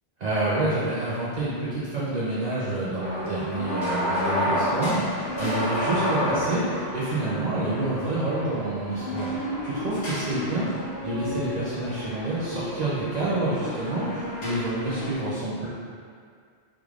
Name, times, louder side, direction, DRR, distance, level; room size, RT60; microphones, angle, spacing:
voice 1, 0.2-15.7, right 2 dB, 50° right, -9 dB, 0.5 m, -28 dB
sound 1, 3.0-15.1, equal, 65° left, 1.1 m, -31 dB
3.5 x 3.1 x 2.3 m, 2.2 s
omnidirectional pair, 1.1 m